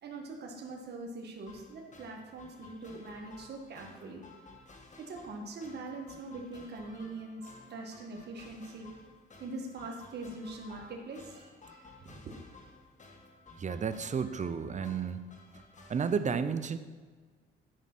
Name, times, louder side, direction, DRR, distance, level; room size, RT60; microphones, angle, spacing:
voice 1, 0.0-4.2 5.1-8.9 9.4-12.3, right 2 dB, 55° right, 1 dB, 1.6 m, -43 dB
sound 1, 1.5-16.2, left 3 dB, 40° left, 1.6 m, -55 dB
voice 2, 13.6-15.3 15.9-16.8, right 6 dB, 35° right, 11 dB, 0.7 m, -32 dB
10.5 x 5.3 x 6.1 m, 1.4 s
cardioid pair, 90°, 20 cm